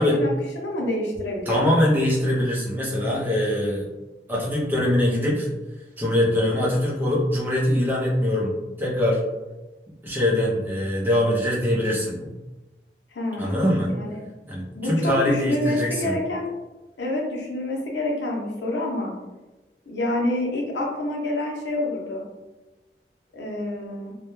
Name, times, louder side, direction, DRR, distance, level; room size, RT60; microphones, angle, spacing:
voice 1, 0.0-1.9 13.1-14.2 14.7-16.5 17.0-19.1 19.9-22.2 23.3-24.1, left 1 dB, 90° left, -1 dB, 0.6 m, -27 dB
voice 2, 1.5-3.8 4.3-5.5 6.0-9.2 10.0-12.3 13.4-13.9 14.5-16.2, left 1 dB, 10° right, -5 dB, 0.5 m, -23 dB
2.2 x 2.0 x 3.0 m, 1.1 s
head